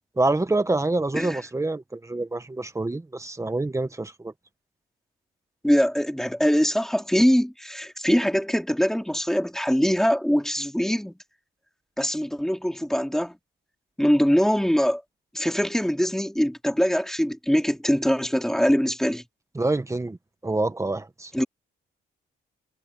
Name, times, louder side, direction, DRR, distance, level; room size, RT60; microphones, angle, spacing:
voice 1, 0.2-4.3 19.6-20.2 20.4-21.3, right 2 dB, 15° right, 1.7 m, -26 dB
voice 2, 5.6-11.1 12.0-13.4 14.0-15.0 15.3-19.2 21.3-21.4, equal, ahead, 3.5 m, -23 dB
cardioid pair, 90°, 20 cm